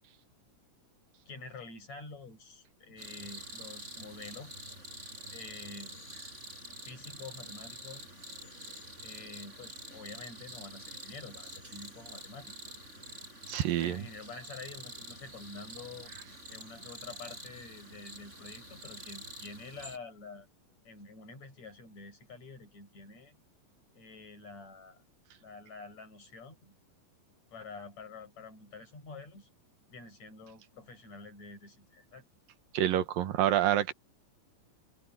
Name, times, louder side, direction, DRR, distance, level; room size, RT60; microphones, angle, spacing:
voice 1, 1.3-4.5 5.3-6.1 6.8-8.1 9.0-12.6 13.7-16.1 16.5-20.5 20.9-23.4 24.0-25.0 25.4-26.7 27.5-29.5 29.9-32.2, left 3 dB, 55° left, 9.1 m, -48 dB
sound 1, 3.0-20.0, right 1 dB, 20° right, 8.3 m, -47 dB
voice 2, 13.5-14.1 32.7-33.9, right 12 dB, 90° right, 3.1 m, -27 dB
open air
omnidirectional pair, 3.9 m